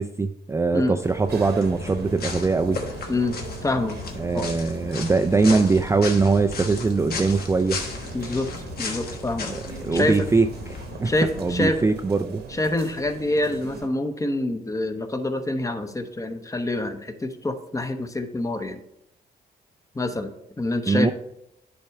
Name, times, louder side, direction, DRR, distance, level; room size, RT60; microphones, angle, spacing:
voice 1, 0.0-2.8 4.2-7.8 9.5-11.1 11.4-12.4 20.9-21.1, right 4 dB, 15° right, 7 dB, 0.3 m, -22 dB
sound 1, 1.0-13.9, right 5 dB, 80° right, 1.1 m, -41 dB
sound 2, 1.3-11.8, left 3 dB, 65° left, 1.2 m, -35 dB
voice 2, 3.1-4.0 4.3-4.5 8.1-8.5 8.8-9.6 9.9-10.3 11.0-11.8 12.5-18.8 19.9-21.1, left 2 dB, 20° left, 8 dB, 0.7 m, -26 dB
9.8 x 3.5 x 4.4 m, 0.83 s
cardioid pair, 85°, 17 cm